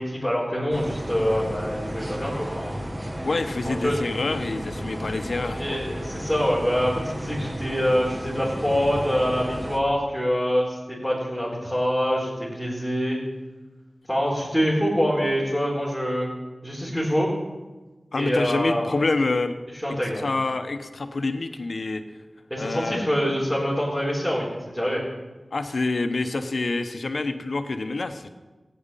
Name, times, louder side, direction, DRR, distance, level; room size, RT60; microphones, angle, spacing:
voice 1, 0.0-2.8 3.6-4.0 5.5-10.8 11.0-13.2 14.1-16.3 16.6-17.3 18.1-19.0 19.8-20.3 22.5-25.0, equal, 5° right, -8 dB, 4.0 m, -25 dB
sound 1, 0.7-9.8, equal, 25° right, 1.3 m, -33 dB
voice 2, 3.2-5.8 18.1-19.5 19.9-22.0 22.6-23.0 25.5-28.3, left 3 dB, 75° left, 7 dB, 1.0 m, -27 dB
15.5 x 9.5 x 5.6 m, 1.2 s
wide cardioid pair, 60°, 0 cm